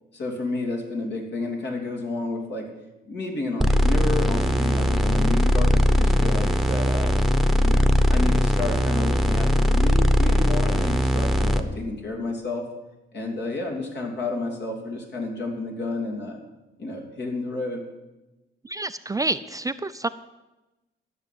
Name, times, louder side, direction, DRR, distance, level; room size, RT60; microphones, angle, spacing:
voice 1, 0.1-2.7 3.1-7.1 7.6-12.7 13.1-16.4 16.8-17.8, left 2 dB, 60° left, 1 dB, 3.2 m, -31 dB
sound 1, 3.6-11.6, left 1 dB, ahead, 1.1 m, -20 dB
voice 2, 18.6-20.1, right 2 dB, 15° right, 11 dB, 0.4 m, -28 dB
13.0 x 6.6 x 9.4 m, 1.1 s
cardioid pair, 90°, 20 cm